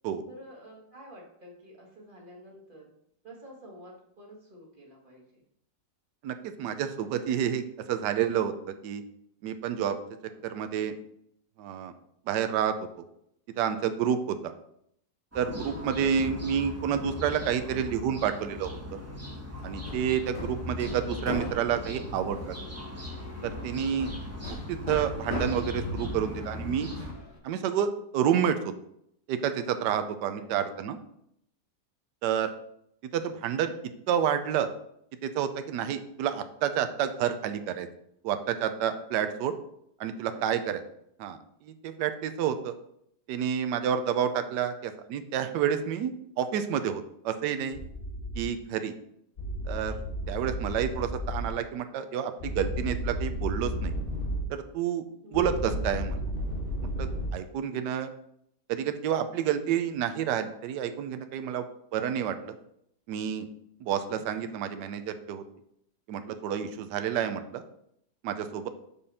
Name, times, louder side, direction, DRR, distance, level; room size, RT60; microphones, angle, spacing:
voice 1, 0.3-2.9 3.2-5.4 10.3-10.4 20.3-20.6 30.4-30.5 40.3-40.7 55.2-55.6, equal, 30° right, -2 dB, 1.9 m, -50 dB
voice 2, 6.2-8.5 8.8-9.0 9.4-10.0 10.4-10.9 11.6-11.9 12.3-12.9 13.6-14.5 15.3-18.8 19.6-22.6 23.4-24.1 24.7-26.9 27.4-28.7 29.3-31.0 32.2-32.5 33.1-33.7 34.1-34.7 35.2-37.9 38.2-39.5 40.0-40.8 41.2-42.7 43.3-47.8 48.4-48.9 49.7-50.0 50.3-53.9 54.5-55.0 55.3-56.2 57.0-57.1 57.3-58.1 58.7-61.6 61.9-62.5 63.1-63.5 63.8-65.4 66.1-67.6 68.2-68.7, right 9 dB, 80° right, 9 dB, 1.2 m, -29 dB
sound 1, 15.3-27.1, left 1 dB, 10° right, 1.0 m, -39 dB
Hammer, 19.5-27.4, left 2 dB, 80° left, 2.4 m, -40 dB
sound 2, 47.7-48.4 49.4-51.5 52.4-54.4 55.3-57.3, equal, 35° left, 1.5 m, -33 dB
6.8 x 5.5 x 4.2 m, 0.72 s
omnidirectional pair, 1.8 m